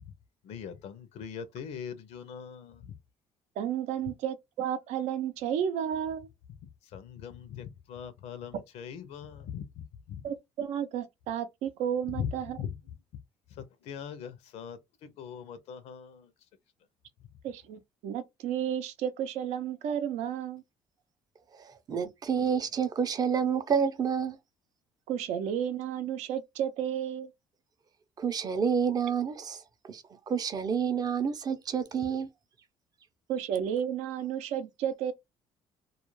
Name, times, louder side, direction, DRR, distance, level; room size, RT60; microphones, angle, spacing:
voice 1, 0.4-2.9 6.9-9.6 10.1-10.2 12.2-12.3 12.6-12.7 13.6-14.8 15.2-16.3, left 8 dB, 70° left, 0.5 m, -40 dB
voice 2, 3.6-6.3 10.2-12.6 17.4-20.6 25.1-27.3 33.3-35.1, right 9 dB, 80° right, 0.6 m, -32 dB
voice 3, 21.5-24.4 28.2-32.3, right 7 dB, 35° right, 0.5 m, -29 dB
2.3 x 2.2 x 3.0 m
cardioid pair, 120°, 12 cm